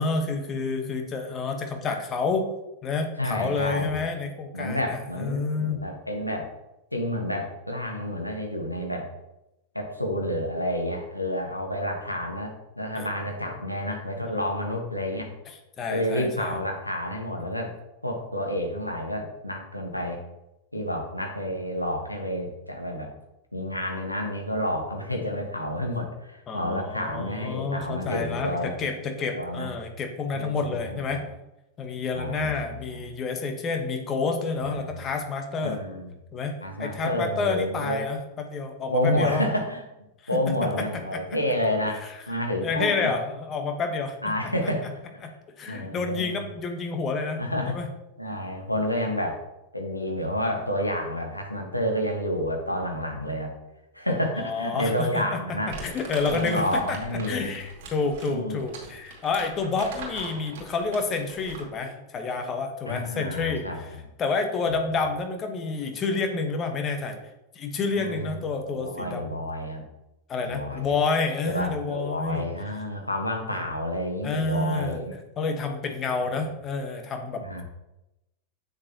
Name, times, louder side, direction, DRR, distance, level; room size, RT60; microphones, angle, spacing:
voice 1, 0.0-2.5 2.8-5.9 12.9-13.1 14.3-14.5 15.8-16.6 26.5-31.2 31.8-35.8 36.3-39.5 40.5-40.6 41.1-41.2 42.6-44.2 45.2-45.3 45.6-47.4 47.7-47.9 54.4-55.4 55.8-57.0 57.3-63.7 64.2-67.2 67.5-69.2 70.3-72.4 74.2-75.1 75.4-77.6, left 4 dB, 25° left, 4 dB, 1.2 m, -29 dB
voice 2, 3.2-4.0 4.5-6.5 6.9-9.1 9.7-15.3 15.9-17.7 18.0-20.2 20.7-23.1 23.5-28.7 29.3-29.7 30.3-31.2 32.1-33.0 34.6-35.0 35.6-36.1 36.6-38.0 38.9-39.8 40.3-43.1 44.2-44.9 45.7-46.3 47.4-47.8 48.2-49.4 49.7-53.5 53.9-55.8 56.2-57.5 58.3-58.6 62.9-63.8 67.9-68.4 68.7-69.8 70.4-70.9 71.5-75.1 77.4-77.6, left 1 dB, 90° left, 1 dB, 1.3 m, -29 dB
Crumpling crinkling, 55.7-61.8, right 3 dB, 50° right, 2.3 m, -41 dB
8.0 x 6.6 x 2.9 m, 0.92 s
figure-of-eight pair, 90°, 0 cm